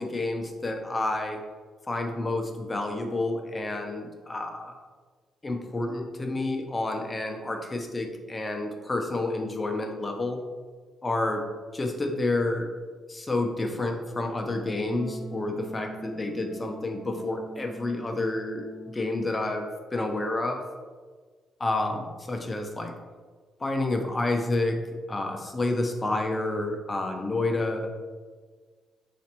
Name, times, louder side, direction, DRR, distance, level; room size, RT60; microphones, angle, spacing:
voice 1, 0.0-1.4 1.9-4.7 5.4-10.4 11.0-11.4 11.7-12.7 13.1-20.6 21.6-22.9 23.6-24.8 25.1-27.9, left 2 dB, 25° left, 3 dB, 0.5 m, -29 dB
Wind instrument woodwind instrument, 14.6-19.4, right 2 dB, 80° right, 0.4 m, -42 dB
4.1 x 2.5 x 2.9 m, 1.5 s
cardioid pair, 90°, 0 cm